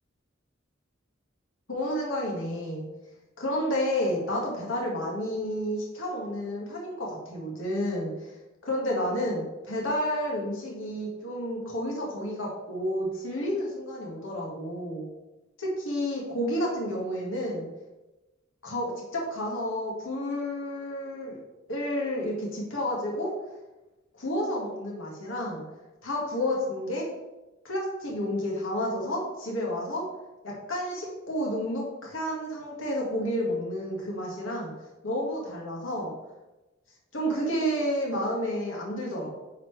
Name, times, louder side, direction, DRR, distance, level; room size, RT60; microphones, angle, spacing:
voice 1, 1.7-2.9 3.4-8.1 8.6-15.0 15.6-17.7 18.6-21.4 21.7-23.3 24.1-25.6 26.0-27.1 27.6-30.1 30.4-34.7 35.0-36.1 37.1-39.3, equal, 80° left, -3 dB, 1.8 m, -30 dB
9.1 x 4.3 x 3.3 m, 1.1 s
head